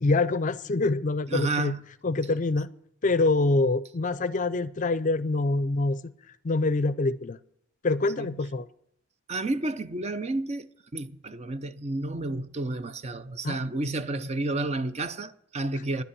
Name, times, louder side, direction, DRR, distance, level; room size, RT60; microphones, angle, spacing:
voice 1, 0.0-1.7 2.0-2.7 3.0-6.1 6.4-7.4 7.8-8.7 13.4-13.6, left 3 dB, 40° left, 0.5 m, -25 dB
voice 2, 1.3-1.8 8.2-8.3 9.3-16.0, right 2 dB, 35° right, 0.6 m, -31 dB
10.5 x 8.1 x 9.9 m
head